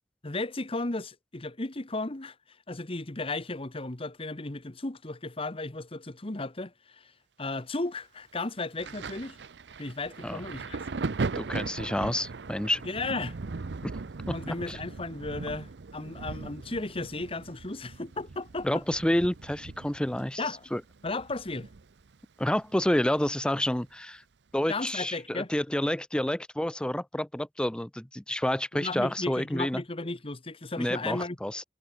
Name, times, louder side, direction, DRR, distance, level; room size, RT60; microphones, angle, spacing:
voice 1, 0.2-2.3 2.7-7.1 7.4-9.4 9.8-10.8 12.8-13.4 14.3-18.8 20.4-20.7 21.0-21.7 24.7-25.5 28.7-31.4, left 2 dB, 35° left, 1.3 m, -35 dB
Thunder, 8.8-22.1 22.4-23.8 24.6-24.8, right 4 dB, 80° right, 0.7 m, -39 dB
voice 2, 11.4-12.8 13.8-13.9 14.5-14.8 18.6-20.4 20.7-20.8 22.4-24.2 24.5-29.8 30.8-31.6, left 1 dB, 5° left, 0.5 m, -29 dB
head